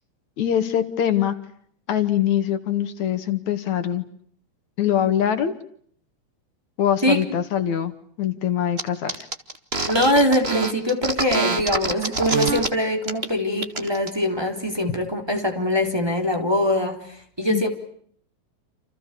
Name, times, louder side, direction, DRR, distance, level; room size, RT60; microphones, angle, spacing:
voice 1, 0.4-1.3 1.9-4.0 4.8-5.5 6.8-7.9 8.2-9.2 17.5-17.6, left 10 dB, 75° left, 10 dB, 3.2 m, -23 dB
sound 1, 8.8-8.9 9.1-12.7 13.0-13.3 13.6-14.1, right 3 dB, 25° right, 1.9 m, -25 dB
voice 2, 9.9-17.7, left 1 dB, 10° right, 3 dB, 4.0 m, -23 dB
29.0 x 28.5 x 6.9 m, 0.63 s
omnidirectional pair, 3.3 m